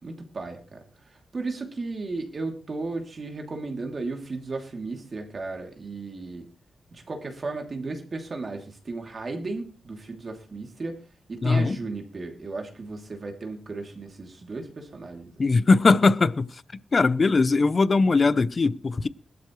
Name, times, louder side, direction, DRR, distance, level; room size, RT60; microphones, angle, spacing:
voice 1, 0.0-6.5 6.9-11.0 11.3-15.5, right 3 dB, 35° right, 2.8 m, -35 dB
voice 2, 11.4-11.8 15.4-16.5 16.9-19.1, left 3 dB, 35° left, 0.6 m, -20 dB
20.5 x 12.0 x 3.2 m
wide cardioid pair, 135°, 0 cm